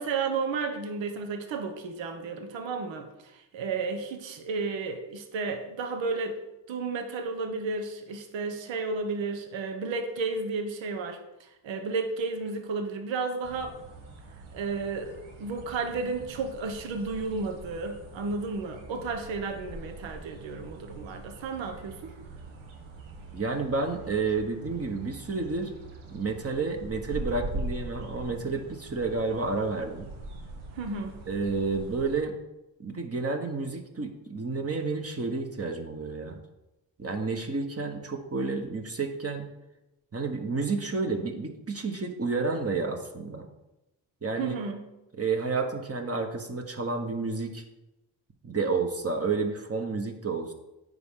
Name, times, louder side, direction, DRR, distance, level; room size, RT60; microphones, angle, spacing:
voice 1, 0.0-6.4 6.7-13.8 14.5-22.2 30.7-31.2 44.4-44.8, right 4 dB, 70° right, 6 dB, 1.1 m, -33 dB
sound 1, 13.4-32.2, right 2 dB, 90° right, 1.3 m, -43 dB
voice 2, 23.3-25.7 26.1-30.1 31.3-32.4 32.8-36.4 37.0-39.5 40.1-43.5 44.2-44.6 45.2-47.6 48.4-50.5, right 4 dB, 30° right, 3 dB, 1.2 m, -30 dB
9.4 x 4.9 x 3.8 m, 0.95 s
supercardioid pair, 60°, 47 cm